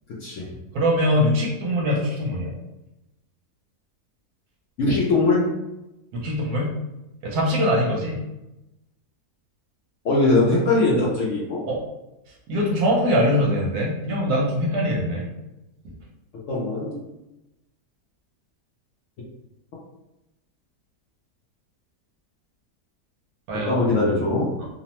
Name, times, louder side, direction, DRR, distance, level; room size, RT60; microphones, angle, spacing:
voice 1, 0.7-2.5 6.1-6.7 7.2-8.2 11.7-11.8 12.5-15.3 23.5-23.8, equal, 70° right, -2 dB, 1.1 m, -22 dB
voice 2, 4.8-5.5 10.0-11.6 16.5-17.0 23.7-24.5, left 2 dB, 65° left, -5 dB, 0.8 m, -21 dB
2.8 x 2.1 x 2.8 m, 0.95 s
omnidirectional pair, 1.7 m